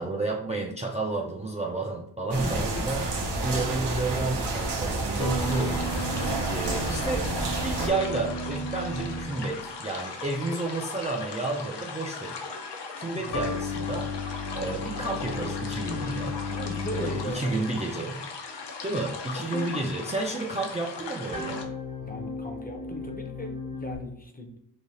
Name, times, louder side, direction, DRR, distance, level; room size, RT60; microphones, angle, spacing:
voice 1, 0.0-3.0 3.4-12.4 13.0-14.1 14.5-16.4 16.9-18.2 18.8-21.7, right 2 dB, 15° right, -1 dB, 0.4 m, -31 dB
sound 1, 2.3-7.9, right 2 dB, 80° right, 0.9 m, -29 dB
voice 2, 2.4-3.1 13.1-13.4 16.5-17.9 19.4-19.8 22.0-24.6, left 1 dB, 20° left, 3 dB, 0.6 m, -38 dB
sound 2, 5.2-9.8 13.3-17.6 21.3-24.0, left 1 dB, 50° left, 1.1 m, -35 dB
sound 3, 5.4-21.6, left 4 dB, 80° left, 0.7 m, -39 dB
3.4 x 2.7 x 3.9 m, 0.70 s
wide cardioid pair, 125°, 41 cm